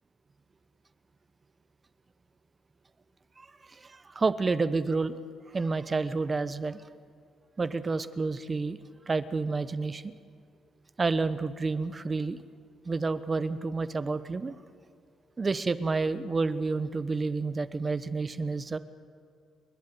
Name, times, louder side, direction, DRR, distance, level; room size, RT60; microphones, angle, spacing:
voice 1, 3.4-5.2 5.5-6.8 7.6-8.8 9.1-10.1 11.0-12.4 12.8-14.5 15.4-18.8, right 3 dB, 30° right, 14 dB, 1.0 m, -29 dB
29.0 x 11.5 x 9.3 m, 2.2 s
cardioid pair, 90°, 0 cm